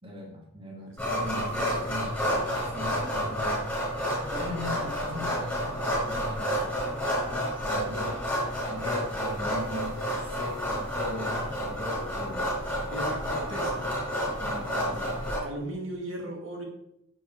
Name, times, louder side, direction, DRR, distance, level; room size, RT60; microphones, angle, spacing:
voice 1, 0.0-3.7 4.3-6.8 7.2-8.1 8.7-12.5 14.4-15.1, left 1 dB, 25° right, -1 dB, 2.5 m, -38 dB
sound 1, 1.0-15.4, equal, 5° left, 4.9 m, -30 dB
voice 2, 12.9-13.9 15.4-16.6, right 1 dB, 65° right, 1 dB, 2.2 m, -38 dB
11.0 x 7.8 x 4.8 m, 0.80 s
head